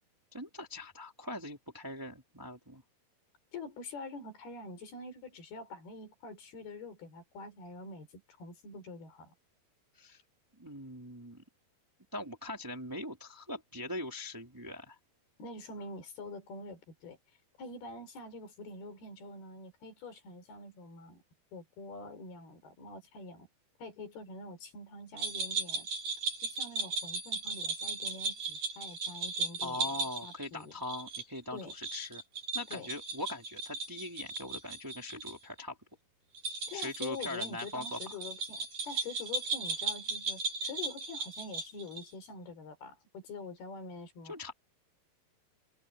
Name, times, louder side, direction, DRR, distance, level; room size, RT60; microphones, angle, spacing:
voice 1, 0.3-2.8 9.9-10.2 10.6-11.4 12.1-15.0 29.6-32.2 32.5-35.8 36.7-38.0 44.2-44.5, left 1 dB, 5° right, 3.3 m, -41 dB
voice 2, 3.5-9.3 15.4-17.2 17.6-21.2 21.5-23.5 23.8-25.9 26.4-30.7 31.5-31.7 32.7-32.9 36.7-44.3, left 3 dB, 90° left, 6.5 m, -46 dB
sound 1, 25.2-35.3 35.6-35.7 36.3-42.1, right 4 dB, 60° right, 9.7 m, -37 dB
omnidirectional pair, 4.4 m